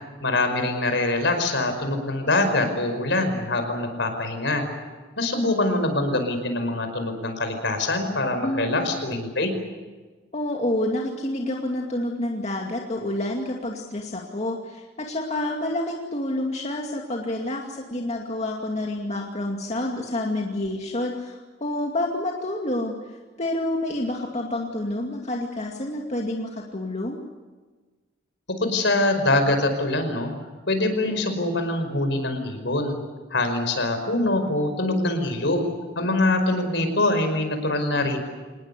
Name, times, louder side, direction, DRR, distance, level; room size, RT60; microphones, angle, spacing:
voice 1, 0.2-4.7 5.2-9.5 28.6-30.3 30.7-33.0 33.3-35.6 36.0-38.3, left 2 dB, 65° left, 7 dB, 5.2 m, -24 dB
voice 2, 8.4-8.9 10.3-27.2, left 1 dB, 35° left, 0 dB, 2.4 m, -28 dB
26.5 x 20.0 x 8.2 m, 1.3 s
head